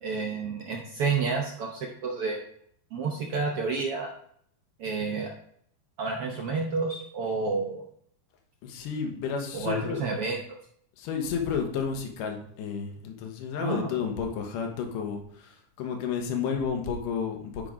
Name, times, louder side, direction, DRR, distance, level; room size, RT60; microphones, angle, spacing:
voice 1, 0.0-2.4 2.9-4.1 4.8-5.3 6.0-7.8 9.5-10.4 13.6-13.9, right 4 dB, 75° right, 1 dB, 1.3 m, -30 dB
voice 2, 8.6-10.0 11.0-17.7, left 6 dB, 80° left, 3 dB, 2.7 m, -31 dB
10.5 x 3.8 x 4.9 m, 0.66 s
omnidirectional pair, 3.8 m